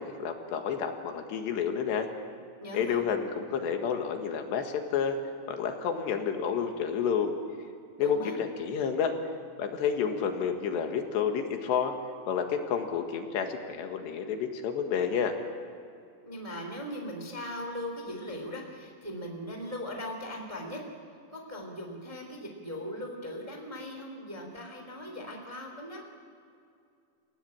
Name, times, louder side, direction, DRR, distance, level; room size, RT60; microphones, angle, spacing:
voice 1, 0.0-2.1 2.7-5.2 5.5-7.4 8.0-9.2 9.6-11.9 12.3-15.4, left 7 dB, 80° left, 5 dB, 3.8 m, -30 dB
voice 2, 2.6-3.0 8.0-8.3 16.2-20.8 21.3-26.0, left 1 dB, 10° right, 2 dB, 2.2 m, -39 dB
29.0 x 16.5 x 8.7 m, 2.4 s
omnidirectional pair, 5.0 m